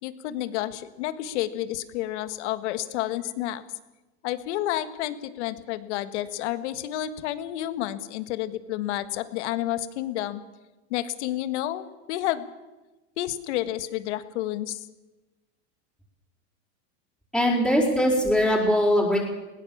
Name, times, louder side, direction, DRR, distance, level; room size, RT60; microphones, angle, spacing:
voice 1, 0.0-3.6 4.2-10.4 10.9-12.5 13.2-14.8, left 13 dB, 80° left, 12 dB, 1.6 m, -30 dB
voice 2, 17.3-19.2, equal, ahead, -7 dB, 5.0 m, -21 dB
20.5 x 17.5 x 7.3 m, 1.1 s
supercardioid pair, 125°, 34 cm